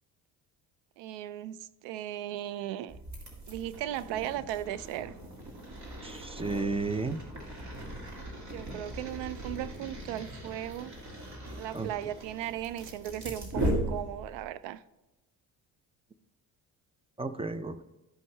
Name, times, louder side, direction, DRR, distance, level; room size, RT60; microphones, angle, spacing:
voice 1, 1.0-3.0 3.5-5.1 8.4-10.9 11.6-14.8, right 12 dB, 80° right, 0.5 m, -37 dB
sound 1, 2.9-14.5, right 1 dB, 40° right, 2.5 m, -38 dB
voice 2, 6.0-7.2 11.7-11.9 17.2-17.8, right 3 dB, 15° right, 0.4 m, -33 dB
13.5 x 5.4 x 3.2 m
supercardioid pair, 85°, 42 cm